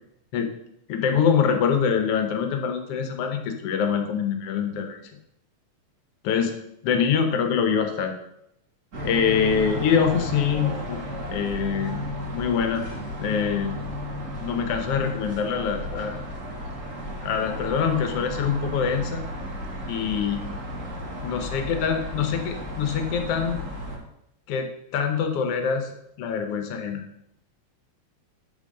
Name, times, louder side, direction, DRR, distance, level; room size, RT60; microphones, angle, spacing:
voice 1, 0.9-5.0 6.2-6.5 6.8-8.2 9.0-11.0 11.3-12.0 12.3-12.8 13.2-13.7 14.4-16.2 17.2-19.2 19.9-20.4 21.2-23.6 24.5-25.9 26.2-27.0, left 7 dB, 75° left, 5 dB, 1.4 m, -24 dB
sound 1, 8.9-24.0, equal, 35° right, 1.2 m, -34 dB
9.0 x 3.8 x 6.5 m, 0.79 s
omnidirectional pair, 3.8 m